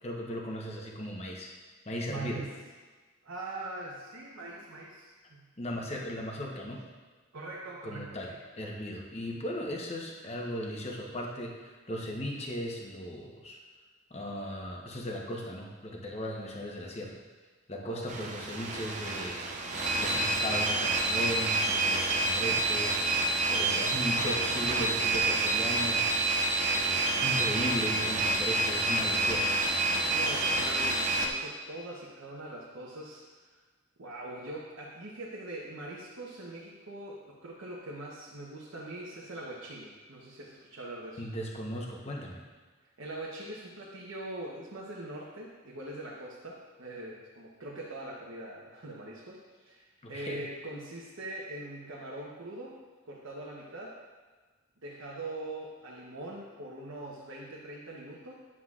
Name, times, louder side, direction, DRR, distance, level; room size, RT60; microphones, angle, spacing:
voice 1, 0.0-1.5 1.9-2.4 5.6-6.8 7.8-8.3 8.6-13.6 14.1-17.2 17.7-19.5 20.0-23.0 23.6-26.1 26.7-29.6 41.2-42.4 50.0-50.4, equal, 30° left, -1 dB, 0.9 m, -37 dB
voice 2, 2.1-2.5 3.2-5.4 7.3-8.4 17.8-18.3 23.5-23.8 30.0-33.5 34.0-41.2 43.0-52.8 53.0-54.0 54.8-58.3, right 2 dB, 80° right, -5 dB, 1.0 m, -42 dB
sound 1, 18.1-31.3, right 2 dB, 35° right, 0.6 m, -28 dB
9.7 x 7.4 x 2.4 m, 1.4 s
head